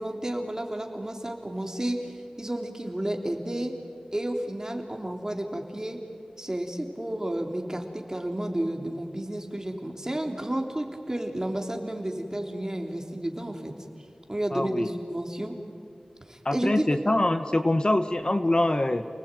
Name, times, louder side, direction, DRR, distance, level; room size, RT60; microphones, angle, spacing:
voice 1, 0.0-3.7 4.1-6.0 6.4-13.7 14.3-15.5 16.3-17.0, right 1 dB, 25° right, 3 dB, 3.4 m, -31 dB
voice 2, 14.5-14.9 16.4-19.1, left 1 dB, 40° left, 9 dB, 1.1 m, -24 dB
29.5 x 19.5 x 9.1 m, 2.5 s
wide cardioid pair, 55°, 2 cm